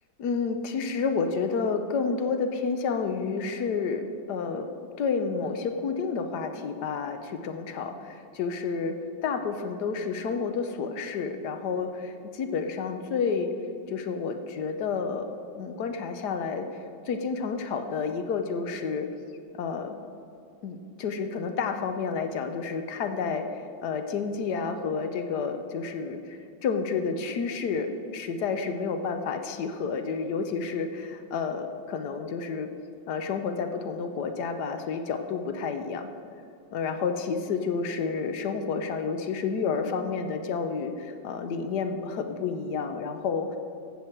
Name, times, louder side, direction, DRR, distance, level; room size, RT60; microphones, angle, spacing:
voice 1, 0.2-4.7 5.0-13.5 13.9-15.3 15.6-16.7 17.1-19.1 19.6-19.9 20.6-32.7 33.1-36.1 36.7-43.6, left 5 dB, 65° left, 7 dB, 1.2 m, -30 dB
14.0 x 7.7 x 4.5 m, 2.5 s
omnidirectional pair, 2.2 m